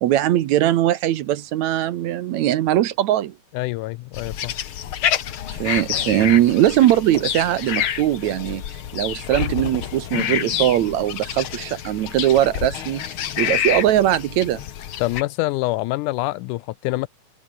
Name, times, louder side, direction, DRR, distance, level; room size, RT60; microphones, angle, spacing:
voice 1, 0.0-3.3 5.6-8.6 8.9-13.0 13.4-14.6, right 13 dB, 70° right, 2.1 m, -20 dB
voice 2, 3.5-4.6 15.0-17.1, left 19 dB, 80° left, 2.0 m, -25 dB
sound 1, 4.1-15.2, left 10 dB, 55° left, 1.6 m, -28 dB
omnidirectional pair, 3.7 m